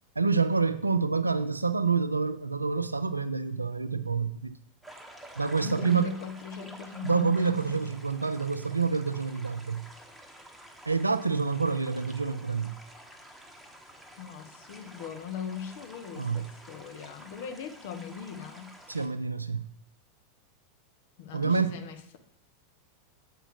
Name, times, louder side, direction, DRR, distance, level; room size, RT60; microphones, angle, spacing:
voice 1, 0.2-4.6 5.4-6.1 7.0-9.9 10.9-12.8 16.2-16.5 18.9-19.7 21.3-21.8, right 5 dB, 85° right, 0.4 m, -27 dB
sound 1, 4.8-19.1, right 1 dB, ahead, 1.1 m, -50 dB
voice 2, 5.6-7.8 14.2-18.7 21.2-22.2, left 7 dB, 55° left, 0.9 m, -39 dB
7.8 x 4.9 x 4.6 m
figure-of-eight pair, 85°, 0 cm